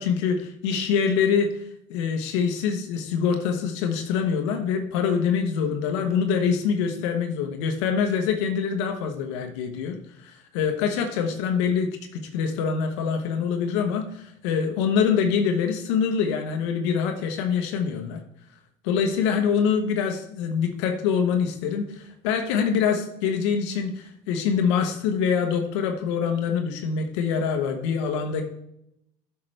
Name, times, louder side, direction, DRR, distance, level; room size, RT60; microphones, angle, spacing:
voice 1, 0.0-1.5 1.9-10.0 10.2-18.2 18.8-28.4, left 6 dB, 85° left, 5 dB, 1.0 m, -25 dB
8.7 x 5.8 x 3.3 m, 0.78 s
supercardioid pair, 90°, 14 cm